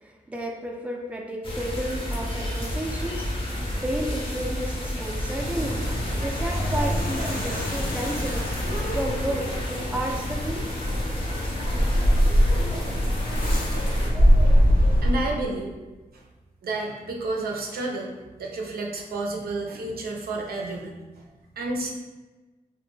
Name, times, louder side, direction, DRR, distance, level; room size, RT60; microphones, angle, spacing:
voice 1, 0.0-3.5 3.8-5.8 6.2-8.4 8.9-10.6, right 1 dB, 10° right, 0 dB, 0.4 m, -32 dB
sound 1, 1.4-14.1, left 1 dB, 35° left, 0.6 m, -31 dB
sound 2, 5.1-15.5, equal, 80° left, 0.7 m, -24 dB
voice 2, 15.0-15.7 16.6-18.1 18.4-21.0 21.6-21.9, right 2 dB, 90° right, 0 dB, 0.5 m, -30 dB
2.1 x 2.1 x 3.1 m, 1.2 s
wide cardioid pair, 90°, 15 cm